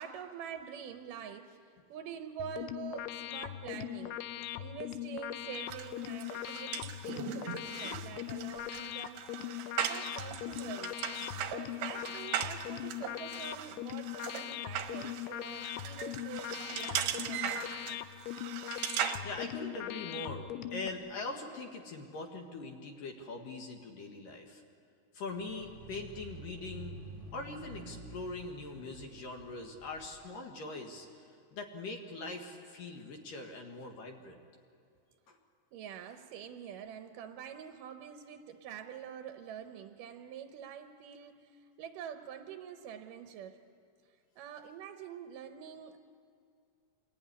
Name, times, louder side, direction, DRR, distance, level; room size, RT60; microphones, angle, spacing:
voice 1, 0.0-4.2 4.6-9.3 9.8-11.0 11.5-18.0 35.7-43.6 44.1-46.0, right 8 dB, 70° right, 7 dB, 2.2 m, -46 dB
sound 1, 2.4-20.9, left 13 dB, 85° left, 2.8 m, -40 dB
sound 2, 5.7-19.2, right 10 dB, 90° right, 3.3 m, -39 dB
voice 2, 19.2-24.6 25.1-27.0 27.3-34.4 35.3-35.4, left 3 dB, 60° left, 2 dB, 3.2 m, -42 dB
sound 3, 25.3-30.2, right 2 dB, 30° right, 1.4 m, -49 dB
27.5 x 20.5 x 9.9 m, 2.3 s
omnidirectional pair, 4.6 m